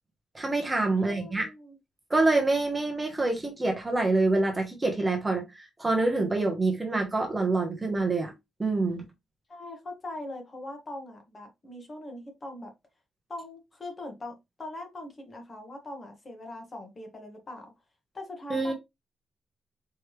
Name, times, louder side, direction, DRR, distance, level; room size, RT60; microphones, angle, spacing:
voice 1, 0.3-1.5 2.1-8.3 8.6-9.0 18.5-18.7, right 2 dB, 15° right, 0.9 m, -26 dB
voice 2, 1.0-1.8 9.5-12.7 13.3-17.7 18.1-18.7, left 1 dB, 30° left, 1.3 m, -41 dB
4.5 x 3.2 x 3.3 m
wide cardioid pair, 155°, 0 cm